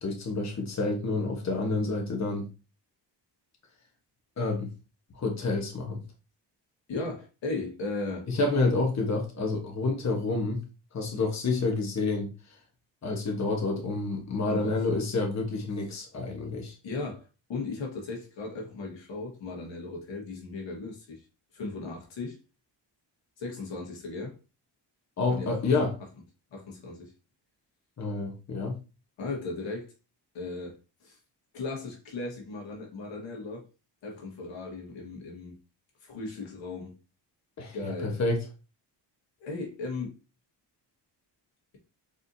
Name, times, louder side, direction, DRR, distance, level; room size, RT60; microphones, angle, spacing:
voice 1, 0.0-2.5 4.4-4.7 5.1-6.0 8.3-10.7 10.9-12.3 13.0-16.7 25.2-25.9 28.0-28.8 37.6-38.4, left 3 dB, 40° left, 1.1 m, -28 dB
voice 2, 6.9-8.3 13.7-13.8 14.5-14.7 16.8-21.2 21.5-22.4 23.4-24.4 25.3-25.6 26.5-27.1 29.2-29.9 30.3-31.2 31.5-33.7 34.0-35.6 36.0-37.0 37.7-38.2 39.4-40.2, left 3 dB, 85° left, 1.6 m, -37 dB
4.2 x 3.4 x 2.7 m
cardioid pair, 90°, 44 cm